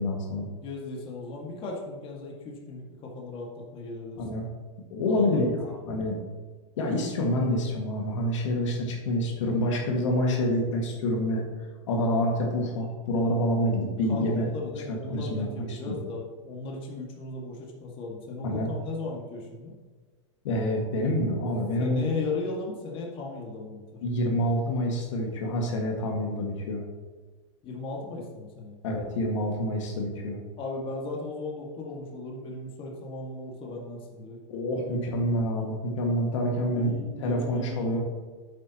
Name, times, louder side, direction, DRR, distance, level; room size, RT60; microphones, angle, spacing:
voice 1, 0.0-0.5 4.2-4.5 4.9-6.2 6.8-11.4 11.9-14.5 14.9-16.0 18.4-18.7 20.4-22.0 24.0-26.8 28.8-30.4 34.5-36.9 37.2-38.0, left 1 dB, 75° left, 0 dB, 1.9 m, -27 dB
voice 2, 0.6-4.2 5.1-5.5 14.1-19.7 21.8-24.0 27.6-28.8 30.6-34.4 34.8-35.2 36.7-37.8, left 3 dB, 35° left, -2 dB, 2.0 m, -36 dB
9.8 x 7.8 x 3.0 m, 1.4 s
hypercardioid pair, 125°, 16 cm